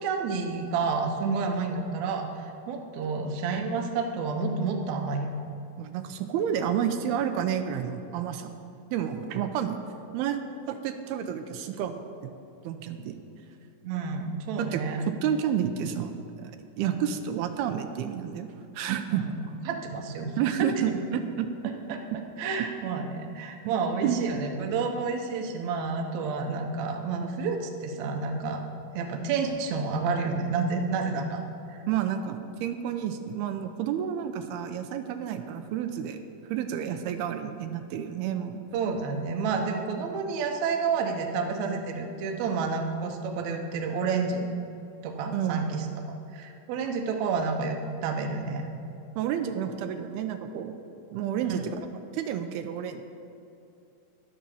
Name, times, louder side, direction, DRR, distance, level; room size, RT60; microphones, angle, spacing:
voice 1, 0.0-5.3 13.8-15.0 16.8-17.0 19.1-20.4 20.9-21.0 21.9-22.0 22.4-28.6 28.9-31.4 31.7-31.8 38.7-44.5 45.0-45.9 46.3-48.7, right 4 dB, 70° right, 3 dB, 1.8 m, -30 dB
voice 2, 5.8-8.5 8.9-9.8 10.1-10.4 10.7-12.3 12.6-13.2 14.6-16.1 16.4-18.5 18.7-19.3 20.4-21.5 23.6-23.7 24.0-24.2 31.9-36.2 36.5-38.6 45.3-45.8 49.2-50.8 51.1-51.8 52.1-53.0, right 9 dB, 85° right, 7 dB, 2.6 m, -30 dB
11.5 x 8.7 x 7.0 m, 2.7 s
omnidirectional pair, 4.6 m